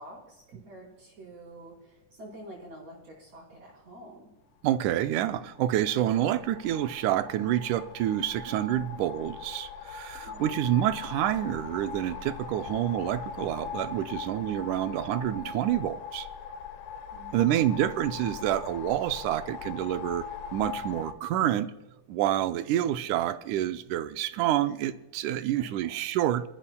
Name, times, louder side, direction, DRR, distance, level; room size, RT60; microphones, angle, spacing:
voice 1, 0.0-4.3 10.3-10.6 17.1-17.9 25.5-25.7, right 1 dB, 60° right, 5.2 m, -47 dB
voice 2, 4.6-16.3 17.3-20.3 20.5-21.7 22.1-26.4, right 12 dB, 80° right, 2.1 m, -28 dB
sound 1, 5.2-21.1, left 7 dB, 80° left, 2.1 m, -41 dB
26.0 x 14.0 x 2.3 m
omnidirectional pair, 3.6 m